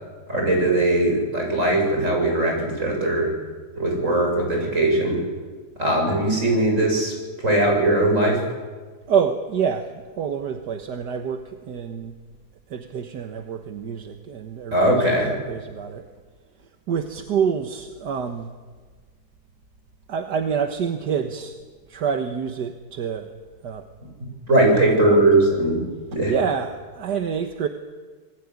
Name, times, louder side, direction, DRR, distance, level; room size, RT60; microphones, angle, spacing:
voice 1, 0.3-3.3 3.8-5.2 5.8-7.1 7.4-8.4 14.7-15.4 24.5-25.8 26.1-26.3, right 1 dB, 45° right, 1 dB, 7.9 m, -20 dB
voice 2, 9.1-12.1 12.7-15.0 15.2-16.1 16.9-18.5 20.1-21.5 21.9-23.3 23.6-23.9 24.7-25.2 26.3-27.7, right 7 dB, 80° right, 5 dB, 1.9 m, -27 dB
27.0 x 20.5 x 9.7 m, 1.4 s
omnidirectional pair, 1.8 m